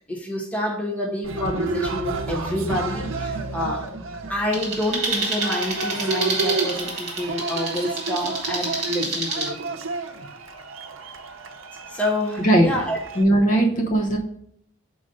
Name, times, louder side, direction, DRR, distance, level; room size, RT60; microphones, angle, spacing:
voice 1, 0.0-3.9 4.3-9.6 11.9-13.0, left 1 dB, 5° left, -2 dB, 0.9 m, -28 dB
Cheering, 1.2-13.2, right 3 dB, 90° right, 0.7 m, -31 dB
sound 1, 4.5-9.5, right 3 dB, 35° right, 1.5 m, -28 dB
voice 2, 12.4-12.7 13.2-14.2, right 1 dB, 40° left, 0 dB, 0.9 m, -18 dB
5.1 x 4.0 x 5.2 m, 0.68 s
head